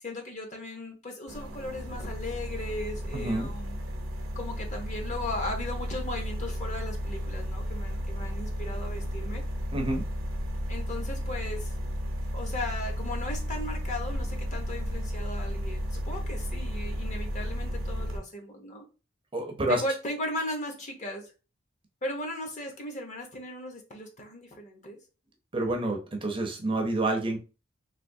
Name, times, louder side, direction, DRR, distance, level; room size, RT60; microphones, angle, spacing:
voice 1, 0.0-3.8 4.3-9.4 10.7-11.8 12.3-18.8 19.7-21.3 22.0-25.0, left 1 dB, 35° left, 3 dB, 0.7 m, -37 dB
sound 1, 1.3-18.2, equal, 75° right, 0.7 m, -33 dB
voice 2, 3.1-3.5 9.7-10.0 19.3-19.8 25.5-27.4, right 1 dB, 25° right, 2 dB, 0.5 m, -28 dB
3.3 x 2.7 x 2.6 m, 0.32 s
head